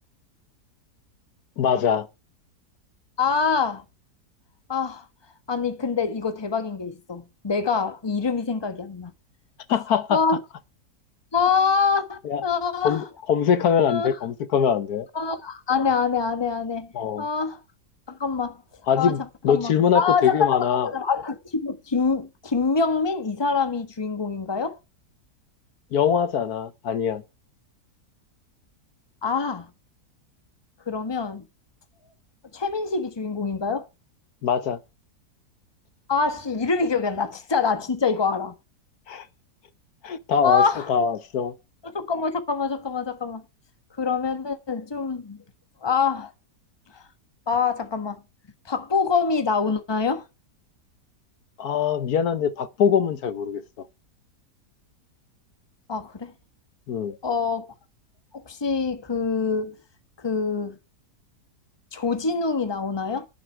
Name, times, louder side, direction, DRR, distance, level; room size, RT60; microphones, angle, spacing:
voice 1, 1.6-2.1 9.7-10.2 12.2-12.4 12.8-15.1 16.9-17.2 18.9-20.9 25.9-27.2 34.4-34.8 39.1-39.3 40.0-41.5 51.6-53.9 56.9-57.1, left 7 dB, 70° left, 1.4 m, -23 dB
voice 2, 3.2-3.8 4.7-5.0 5.5-9.1 10.1-10.4 11.3-13.0 13.9-14.1 15.1-16.9 17.2-17.6 18.1-18.6 19.0-19.1 19.5-24.8 29.2-29.7 30.9-31.4 32.5-33.9 36.1-38.5 40.4-40.9 41.9-43.4 44.0-45.4 45.8-46.3 46.9-47.0 47.5-48.2 48.6-50.2 55.9-56.3 57.2-57.6 58.4-59.8 60.2-60.8 61.9-63.3, left 5 dB, 15° left, 1.2 m, -25 dB
11.0 x 10.0 x 4.5 m
omnidirectional pair, 1.8 m